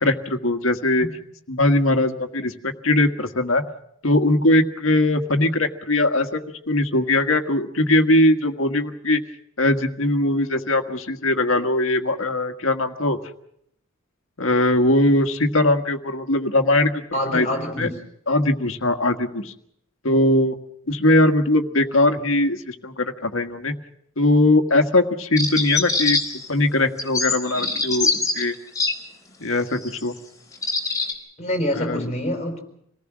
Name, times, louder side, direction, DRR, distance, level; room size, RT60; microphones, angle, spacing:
voice 1, 0.0-1.1 1.5-3.6 4.0-6.4 6.7-9.2 9.6-13.2 14.4-17.0 17.3-17.5 17.8-17.9 18.3-19.5 20.0-20.6 20.9-23.7 24.2-26.2 26.5-28.6 29.4-30.2 31.8-32.1, left 1 dB, 75° left, 6 dB, 1.7 m, -20 dB
voice 2, 17.1-18.0 31.4-32.6, left 1 dB, 35° left, 5 dB, 4.8 m, -26 dB
sound 1, 25.4-26.5 27.0-28.9 29.8-30.0 30.5-31.1, left 3 dB, 15° left, 4.4 m, -23 dB
27.0 x 18.5 x 6.3 m, 0.72 s
head